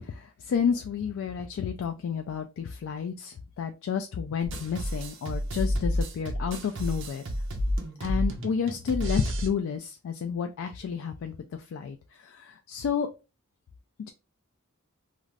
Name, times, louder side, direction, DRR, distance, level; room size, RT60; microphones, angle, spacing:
voice 1, 0.1-7.2 8.0-11.3 11.7-12.0 12.2-13.1, left 7 dB, 65° left, 6 dB, 0.3 m, -30 dB
sound 1, 4.4-9.5, equal, 60° right, 0.7 m, -30 dB
2.5 x 2.4 x 3.1 m, 0.28 s
head